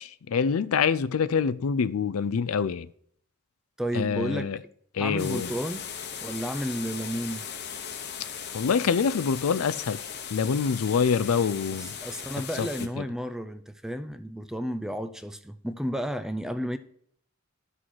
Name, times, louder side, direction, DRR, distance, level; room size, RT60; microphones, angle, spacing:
voice 1, 0.0-2.9 3.9-4.6 4.9-5.5 8.5-10.0 10.3-11.9 12.6-12.7 13.0-13.1, left 6 dB, 80° left, 0.4 m, -25 dB
voice 2, 3.8-4.5 5.0-5.9 6.2-7.4 11.8-16.8, equal, ahead, 0.4 m, -32 dB
sound 1, 5.2-12.9, left 7 dB, 50° left, 1.0 m, -38 dB
11.0 x 6.3 x 4.6 m
head